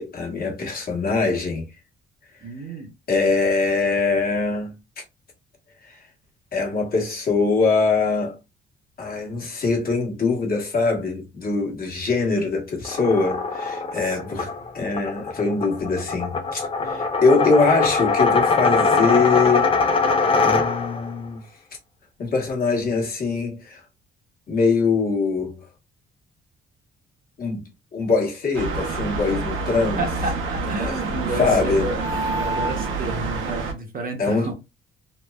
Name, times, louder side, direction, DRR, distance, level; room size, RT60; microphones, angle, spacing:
voice 1, 0.0-1.7 3.1-4.7 5.8-6.0 6.5-8.4 9.0-19.7 20.4-21.4 22.2-23.8 24.5-25.6 27.4-30.0 30.8-30.9 31.4-31.9 34.2-34.5, left 4 dB, 50° left, 1.2 m, -23 dB
voice 2, 2.4-2.9 14.0-14.4 30.0-34.5, right 3 dB, 45° right, 0.9 m, -31 dB
sound 1, 12.8-21.1, left 4 dB, 30° left, 0.4 m, -22 dB
sound 2, 28.5-33.7, right 3 dB, 80° right, 0.8 m, -27 dB
3.0 x 2.0 x 2.2 m
cardioid pair, 90°, 20 cm